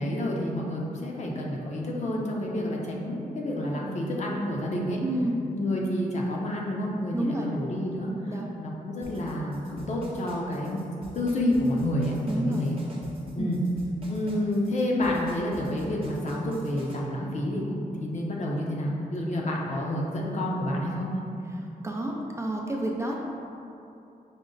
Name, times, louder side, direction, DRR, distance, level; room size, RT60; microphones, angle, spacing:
voice 1, 0.0-5.0 5.5-10.8 11.1-12.8 13.3-13.6 14.1-21.2, left 1 dB, 50° left, -2 dB, 0.6 m, -29 dB
voice 2, 5.0-5.4 7.1-7.5 8.3-8.5 12.2-12.7 13.4-13.6 21.8-23.2, right 1 dB, 20° right, -1 dB, 0.3 m, -30 dB
sound 1, 9.0-17.0, right 1 dB, 35° right, 0.7 m, -47 dB
5.2 x 2.1 x 3.7 m, 2.7 s
wide cardioid pair, 120°, 15 cm